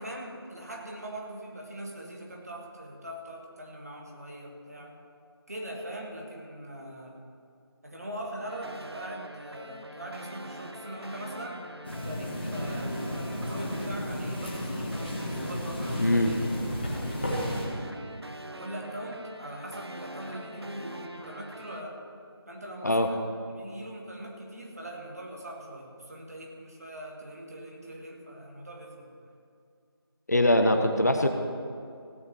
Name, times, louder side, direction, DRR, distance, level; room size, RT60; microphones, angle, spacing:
voice 1, 0.0-5.0 5.5-7.2 7.8-11.6 11.9-16.4 17.0-17.7 18.6-22.0 22.5-23.2 23.5-29.1, right 1 dB, 40° right, -1 dB, 1.8 m, -41 dB
sound 1, 8.5-21.8, right 1 dB, 80° right, 1.0 m, -44 dB
sound 2, 11.8-17.7, left 1 dB, 25° left, 1.7 m, -33 dB
voice 2, 16.0-16.3 22.8-23.1 30.3-31.3, left 1 dB, 40° left, 5 dB, 0.8 m, -22 dB
16.5 x 5.7 x 7.4 m, 2.4 s
figure-of-eight pair, 170°, 13 cm